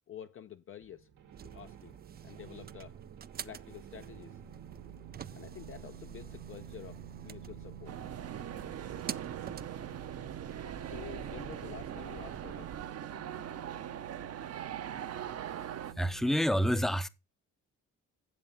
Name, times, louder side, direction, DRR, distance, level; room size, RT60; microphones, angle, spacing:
voice 1, 0.1-1.1 1.4-2.0 2.2-3.0 3.4-4.4 5.3-8.0 10.8-12.7, left 9 dB, 45° left, 0.7 m, -49 dB
sound 1, 0.8-16.4, right 9 dB, 75° right, 1.8 m, -51 dB
sound 2, 1.3-12.8, right 8 dB, 30° right, 0.4 m, -47 dB
sound 3, 7.9-15.9, right 10 dB, 55° right, 0.9 m, -41 dB
voice 2, 16.0-17.1, equal, ahead, 0.7 m, -28 dB
7.7 x 7.5 x 5.3 m
cardioid pair, 90°, 30 cm